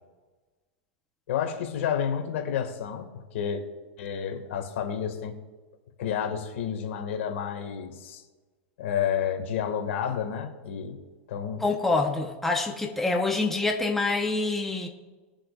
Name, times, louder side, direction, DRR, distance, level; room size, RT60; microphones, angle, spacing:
voice 1, 1.3-3.6 4.0-5.3 6.0-8.2 8.8-11.0 11.3-11.6, left 8 dB, 70° left, 4 dB, 2.0 m, -30 dB
voice 2, 11.6-14.9, left 3 dB, 5° left, 1 dB, 1.0 m, -26 dB
21.5 x 7.6 x 2.5 m, 1.3 s
supercardioid pair, 140°, 7 cm